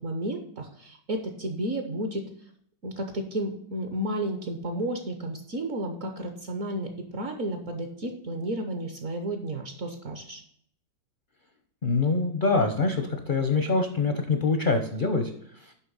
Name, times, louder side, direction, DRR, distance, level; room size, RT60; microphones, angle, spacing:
voice 1, 0.0-2.2 2.8-10.4, right 1 dB, 55° right, 4 dB, 1.2 m, -32 dB
voice 2, 11.8-15.3, left 3 dB, 45° left, 5 dB, 0.6 m, -24 dB
7.1 x 5.5 x 5.4 m, 0.67 s
omnidirectional pair, 1.9 m